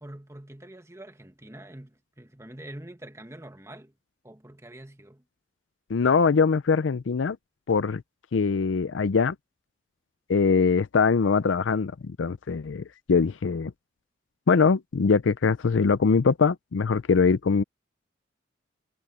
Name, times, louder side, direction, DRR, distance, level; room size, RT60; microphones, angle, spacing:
voice 1, 0.0-3.9 4.2-5.2, right 1 dB, 15° right, 1.7 m, -45 dB
voice 2, 5.9-7.4 7.7-8.0 8.3-9.3 10.3-13.7 14.5-17.6, left 5 dB, 85° left, 0.5 m, -22 dB
head